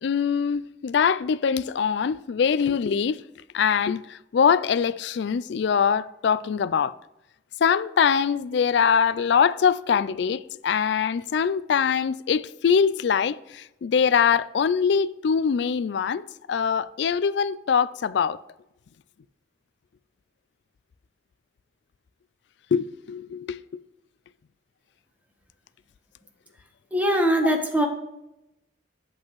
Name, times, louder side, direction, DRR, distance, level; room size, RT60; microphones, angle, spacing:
voice 1, 0.0-3.2 3.5-6.9 7.6-16.2 16.5-18.4 22.7-23.6, left 6 dB, 65° left, 0.3 m, -23 dB
voice 2, 26.9-27.9, equal, 10° right, 1.1 m, -21 dB
8.6 x 7.7 x 3.1 m
head